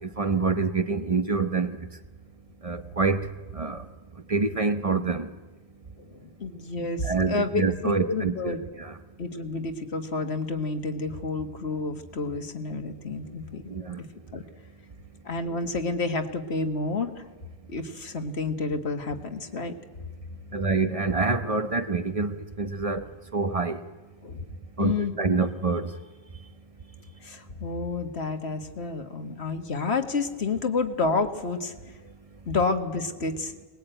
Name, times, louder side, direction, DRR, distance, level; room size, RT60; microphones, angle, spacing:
voice 1, 0.0-1.8 2.6-3.9 4.3-5.3 7.0-9.0 13.7-14.0 20.5-23.0 23.3-23.8 24.8-25.9, right 4 dB, 35° right, 1.1 m, -26 dB
voice 2, 6.0-8.6 9.2-13.6 14.3-14.4 15.3-17.2 17.7-19.7 24.2-24.4 24.8-25.4 27.2-31.7 32.5-33.5, left 3 dB, 80° left, 1.9 m, -30 dB
23.0 x 19.5 x 9.1 m
omnidirectional pair, 1.1 m